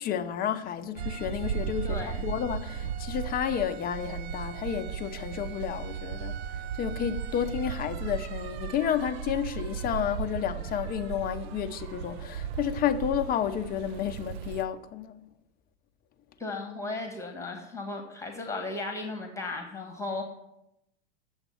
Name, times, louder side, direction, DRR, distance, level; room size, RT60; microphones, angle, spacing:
voice 1, 0.0-15.2, left 9 dB, 25° left, 0.6 m, -31 dB
sound 1, 1.0-14.6, right 8 dB, 55° right, 0.6 m, -36 dB
voice 2, 1.8-2.2 16.4-20.2, left 3 dB, 10° left, 1.4 m, -35 dB
8.2 x 7.2 x 5.6 m
hypercardioid pair, 105°, 38 cm